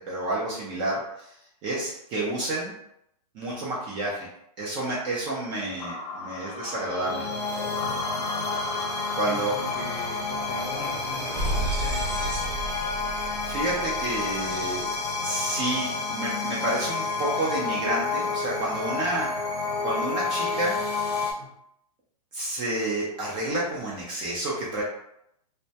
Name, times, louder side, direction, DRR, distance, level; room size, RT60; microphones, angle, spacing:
voice 1, 0.1-1.3 1.6-2.7 3.3-4.3 4.6-7.2 9.2-9.5 13.4-14.8 15.2-19.3 19.8-20.8 22.3-24.8, right 1 dB, 20° right, -5 dB, 0.4 m, -29 dB
sound 1, 5.8-12.9, left 3 dB, 60° left, 0.4 m, -39 dB
sound 2, 6.6-21.3, left 4 dB, 90° left, 0.7 m, -30 dB
sound 3, 8.8-14.9, right 1 dB, 40° right, 0.8 m, -34 dB
voice 2, 9.1-12.3 21.4-21.6, left 2 dB, 25° left, -4 dB, 0.7 m, -40 dB
2.1 x 2.1 x 2.7 m, 0.77 s
hypercardioid pair, 155°, 20 cm